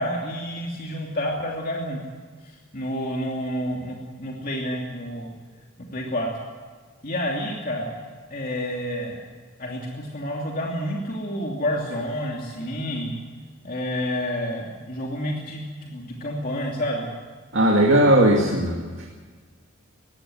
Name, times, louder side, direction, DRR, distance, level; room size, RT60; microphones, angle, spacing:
voice 1, 0.0-2.0 2.4-5.3 5.9-6.3 7.0-8.0 8.3-9.2 9.6-13.2 13.6-17.1, equal, 45° left, -1 dB, 2.9 m, -29 dB
voice 2, 17.5-19.1, right 1 dB, 60° right, -1 dB, 2.5 m, -18 dB
21.5 x 16.0 x 9.5 m, 1.5 s
head